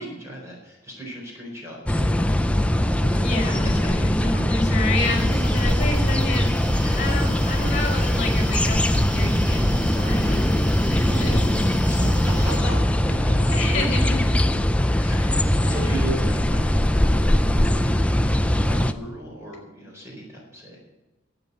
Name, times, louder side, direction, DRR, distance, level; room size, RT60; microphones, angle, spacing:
voice 1, 0.0-3.8 11.1-11.4 11.8-13.5 14.9-18.4 18.7-20.8, right 1 dB, 15° right, -2 dB, 4.3 m, -37 dB
sound 1, 1.9-18.9, left 1 dB, 5° left, 0.4 m, -21 dB
voice 2, 3.2-11.3 13.5-14.4 15.2-15.7, left 2 dB, 35° left, 3 dB, 4.7 m, -30 dB
sound 2, 4.9-12.6, right 1 dB, 60° right, 5.1 m, -34 dB
12.5 x 8.6 x 8.4 m, 1.1 s
head